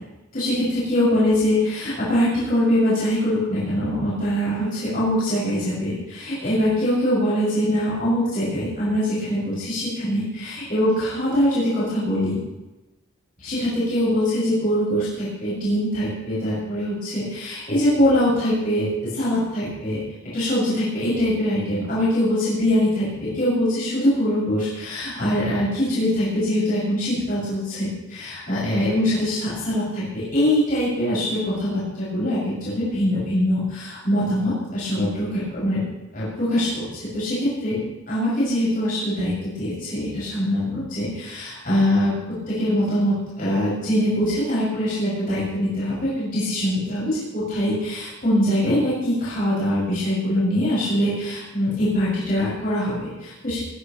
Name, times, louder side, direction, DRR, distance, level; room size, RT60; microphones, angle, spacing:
voice 1, 0.3-12.4 13.4-20.0 20.3-35.8 36.1-37.8 38.1-42.2 42.5-53.6, equal, 40° left, -9 dB, 6.5 m, -23 dB
19.5 x 17.0 x 3.2 m, 1.0 s
head